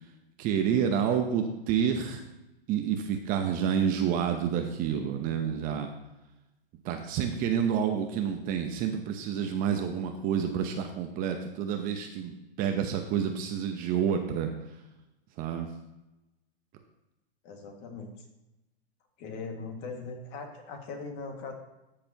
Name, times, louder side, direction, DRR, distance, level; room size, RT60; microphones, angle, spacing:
voice 1, 0.4-2.2 2.7-5.9 6.8-14.5 15.4-15.7, right 8 dB, 30° right, 5 dB, 0.8 m, -29 dB
voice 2, 17.4-18.1 19.2-21.5, left 4 dB, 35° left, 3 dB, 1.9 m, -40 dB
13.5 x 6.8 x 2.9 m, 0.96 s
hypercardioid pair, 140°, 30 cm